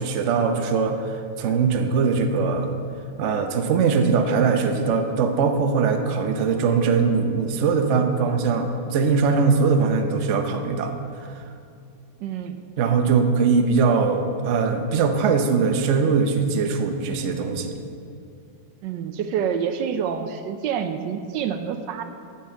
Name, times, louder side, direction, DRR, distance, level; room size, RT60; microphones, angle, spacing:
voice 1, 0.0-2.7 3.2-10.9 11.2-11.4 12.8-17.7, right 5 dB, 90° right, 5 dB, 0.6 m, -21 dB
voice 2, 12.2-12.6 18.8-22.0, right 7 dB, 70° right, 8 dB, 1.1 m, -27 dB
8.9 x 6.0 x 7.6 m, 2.4 s
omnidirectional pair, 2.3 m